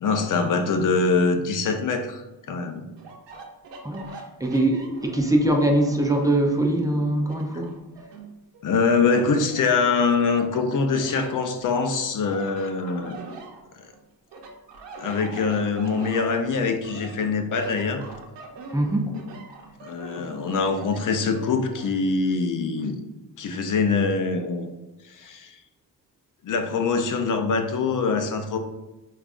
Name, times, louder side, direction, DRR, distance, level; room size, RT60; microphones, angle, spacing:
voice 1, 0.0-2.2 2.5-2.8 8.6-13.2 15.0-18.0 19.8-23.0 23.4-24.7 25.1-25.6 26.4-28.6, left 4 dB, 50° left, 6 dB, 0.5 m, -24 dB
sound 1, 3.0-6.4 6.9-8.6 9.0-9.9 10.4-14.0 14.3-21.9, right 3 dB, 85° right, 0.7 m, -42 dB
voice 2, 3.8-4.1 4.4-7.7 18.7-19.2, right 1 dB, 10° right, 2 dB, 0.5 m, -22 dB
5.1 x 2.4 x 2.4 m, 1.1 s
cardioid pair, 85°, 42 cm